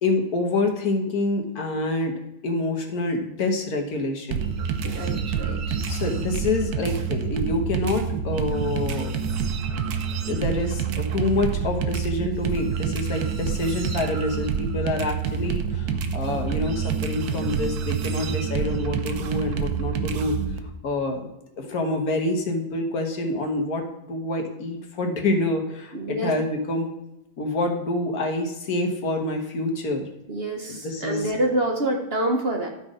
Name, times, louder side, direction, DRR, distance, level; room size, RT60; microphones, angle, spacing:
voice 1, 0.0-2.1 2.4-4.4 5.9-9.1 9.7-9.8 10.3-20.4 20.8-21.3 21.6-26.9 27.4-30.1 30.7-31.3, left 2 dB, 75° left, 3 dB, 1.7 m, -27 dB
sound 1, 4.3-20.6, right 6 dB, 85° right, 1.3 m, -27 dB
voice 2, 4.8-5.8 25.9-26.3 30.3-32.7, right 1 dB, 45° right, 2 dB, 1.3 m, -27 dB
12.0 x 4.2 x 4.9 m, 0.88 s
omnidirectional pair, 1.6 m